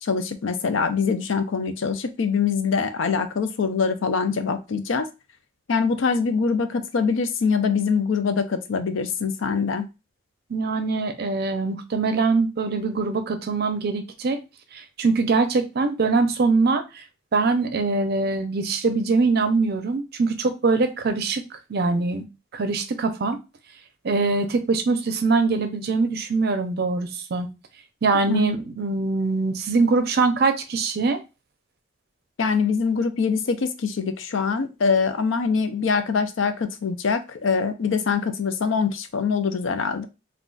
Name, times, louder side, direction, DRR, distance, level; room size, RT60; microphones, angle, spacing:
voice 1, 0.0-5.1 5.7-9.9 28.3-28.5 32.4-40.1, left 5 dB, 75° left, 9 dB, 0.5 m, -24 dB
voice 2, 10.5-14.4 14.7-17.0 17.3-21.4 21.7-22.2 22.5-23.4 24.0-27.5 28.0-31.2, right 3 dB, 55° right, 7 dB, 0.5 m, -23 dB
3.7 x 2.3 x 2.3 m, 0.27 s
head